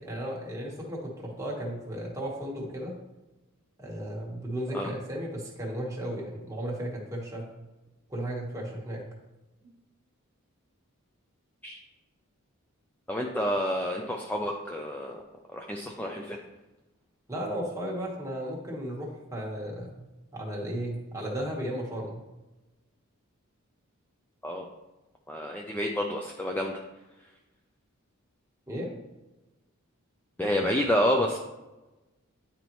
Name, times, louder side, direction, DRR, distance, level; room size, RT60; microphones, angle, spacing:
voice 1, 0.0-3.0 3.8-7.4 8.1-9.0 17.3-20.1 20.3-22.2 28.7-28.9, equal, 15° right, -3 dB, 1.3 m, -35 dB
voice 2, 13.1-15.2 15.5-16.4 24.4-24.7 25.3-26.8 30.4-31.4, equal, 10° left, 1 dB, 0.4 m, -29 dB
9.8 x 4.0 x 3.1 m, 1.1 s
head